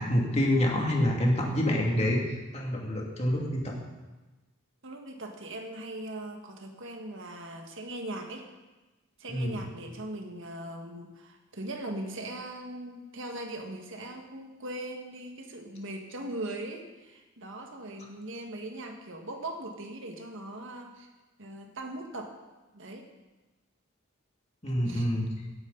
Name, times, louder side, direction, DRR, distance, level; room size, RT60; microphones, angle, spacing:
voice 1, 0.0-3.7 9.3-9.6 24.6-25.3, left 1 dB, 30° left, -1 dB, 2.5 m, -27 dB
voice 2, 4.8-8.5 9.2-21.1 21.4-22.3 22.7-23.1 24.9-25.1, right 1 dB, 65° right, 3 dB, 1.8 m, -40 dB
17.0 x 10.0 x 4.0 m, 1.1 s
head